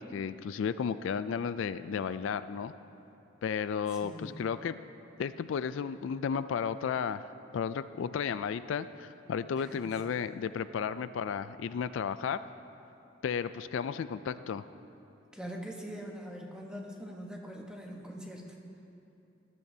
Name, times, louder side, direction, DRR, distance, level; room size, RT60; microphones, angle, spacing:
voice 1, 0.0-2.7 3.4-4.8 5.2-7.2 7.5-12.4 13.2-14.6, left 7 dB, 75° left, 13 dB, 0.3 m, -33 dB
voice 2, 3.9-4.4 9.6-9.8 15.3-18.5, equal, 5° right, -1 dB, 1.1 m, -43 dB
20.0 x 13.5 x 2.8 m, 2.8 s
head